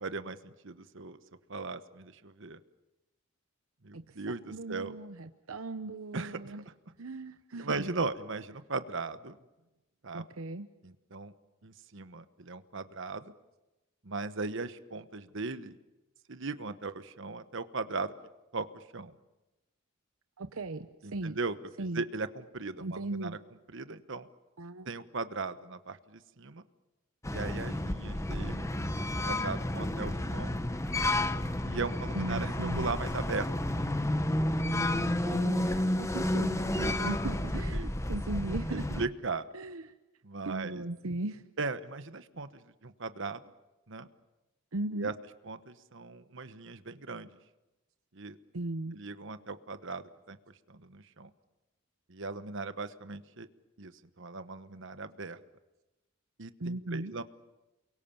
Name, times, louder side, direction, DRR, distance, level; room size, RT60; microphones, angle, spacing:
voice 1, 0.0-1.2 1.5-2.6 3.8-4.9 6.1-6.6 7.6-9.4 10.0-10.2 10.8-11.3 11.6-13.3 14.0-15.8 16.3-18.1 18.5-19.1 21.0-23.4 23.7-24.3 24.8-26.6 27.3-28.7 29.0-30.6 31.6-33.5 35.3-36.0 36.7-36.9 37.7-37.8 38.7-39.4 40.2-40.8 41.6-43.4 43.9-44.1 44.9-45.1 45.5-47.3 48.1-48.4 48.9-50.4 50.7-51.3 52.1-53.5 53.8-53.9 54.2-55.4 56.4-57.2, right 3 dB, 60° right, 11 dB, 1.1 m, -38 dB
voice 2, 4.5-6.6 7.0-7.8 10.1-10.7 20.4-21.4 21.8-22.0 22.8-23.4 24.6-24.9 32.1-32.9 34.8-39.0 39.5-39.9 40.4-41.4 44.7-45.1 48.5-48.9 56.6-57.2, right 2 dB, 80° right, 10 dB, 0.9 m, -38 dB
sound 1, 27.2-39.1, left 1 dB, 15° left, 0.9 m, -31 dB
29.0 x 23.0 x 7.2 m, 1.0 s
head